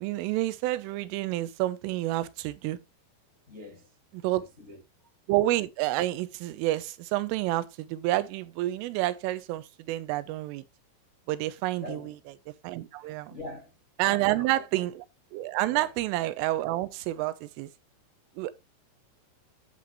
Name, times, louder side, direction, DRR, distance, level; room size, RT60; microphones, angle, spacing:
voice 1, 0.0-2.8 4.1-4.5 5.3-10.6 11.3-12.0 12.6-13.4 14.0-14.9 15.3-17.7 18.4-18.5, right 16 dB, 85° right, 3.3 m, -29 dB
voice 2, 3.5-4.0 4.3-4.8 11.8-12.2 13.0-13.7 14.0-14.7 15.7-15.9, left 1 dB, 45° left, 0.9 m, -43 dB
11.0 x 7.7 x 3.1 m
omnidirectional pair, 5.7 m